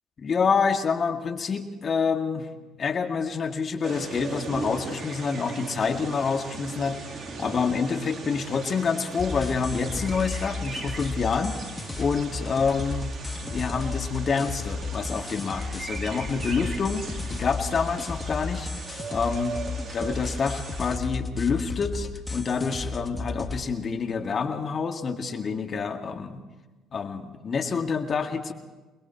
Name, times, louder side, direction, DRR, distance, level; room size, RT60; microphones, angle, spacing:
voice 1, 0.2-2.5 2.8-11.6 12.0-13.1 13.4-18.7 19.1-19.5 19.9-26.4 26.9-28.5, left 5 dB, 45° left, 5 dB, 2.0 m, -27 dB
sound 1, 3.8-21.0, right 4 dB, 40° right, 3.1 m, -39 dB
sound 2, 9.2-23.6, left 3 dB, 20° left, 2.7 m, -34 dB
29.0 x 21.0 x 4.5 m, 1.2 s
hypercardioid pair, 55°, 0 cm